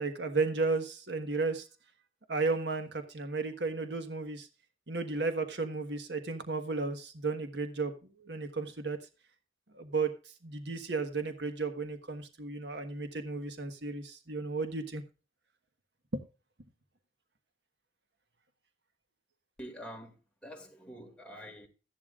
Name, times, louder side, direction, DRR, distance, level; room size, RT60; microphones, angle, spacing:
voice 1, 0.0-1.7 2.3-4.5 4.9-7.9 8.2-9.0 9.7-10.1 10.4-15.0 16.1-16.2, right 3 dB, 65° right, 1.4 m, -33 dB
voice 2, 19.6-21.7, equal, 5° left, 2.3 m, -46 dB
14.0 x 11.0 x 2.5 m
head